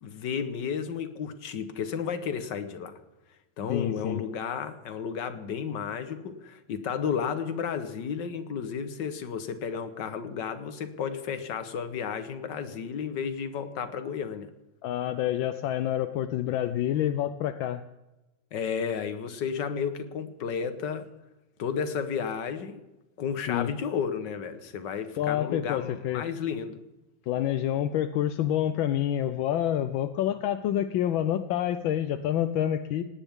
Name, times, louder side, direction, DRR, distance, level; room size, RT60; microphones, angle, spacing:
voice 1, 0.0-3.0 3.6-14.5 18.5-21.1 21.6-22.8 23.2-26.8, left 7 dB, 65° left, 10 dB, 1.8 m, -32 dB
voice 2, 3.7-4.2 14.8-17.8 23.5-23.7 25.2-26.3 27.3-33.1, left 11 dB, 80° left, 11 dB, 1.4 m, -28 dB
19.0 x 18.0 x 3.6 m, 1.0 s
omnidirectional pair, 2.1 m